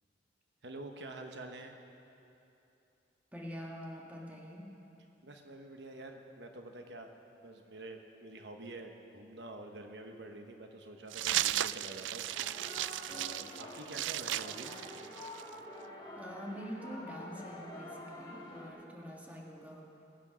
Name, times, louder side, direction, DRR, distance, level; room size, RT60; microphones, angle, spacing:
voice 1, 0.6-1.8 5.2-7.1 7.4-14.9, right 2 dB, 70° right, 4 dB, 1.0 m, -48 dB
voice 2, 3.3-4.7 16.1-19.8, equal, 10° right, -2 dB, 1.6 m, -45 dB
sound 1, 11.1-15.5, right 13 dB, 85° right, 0.3 m, -35 dB
sound 2, 12.3-18.7, left 1 dB, 25° left, 2.4 m, -47 dB
21.5 x 8.5 x 6.2 m, 2.8 s
head